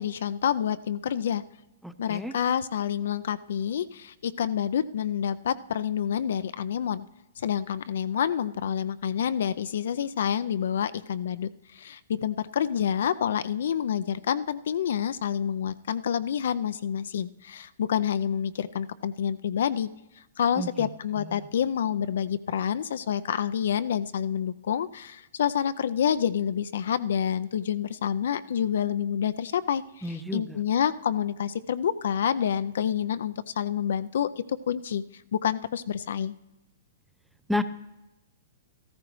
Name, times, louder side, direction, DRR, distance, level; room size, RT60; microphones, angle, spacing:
voice 1, 0.0-1.4 2.0-7.1 7.4-19.9 20.4-35.0 35.3-36.3, left 8 dB, 65° left, 13 dB, 0.4 m, -28 dB
voice 2, 1.8-2.3 20.6-20.9 21.2-21.4 30.0-30.6 37.5-37.6, left 1 dB, ahead, 12 dB, 0.5 m, -31 dB
13.5 x 13.5 x 3.1 m, 0.99 s
hypercardioid pair, 120°, 0 cm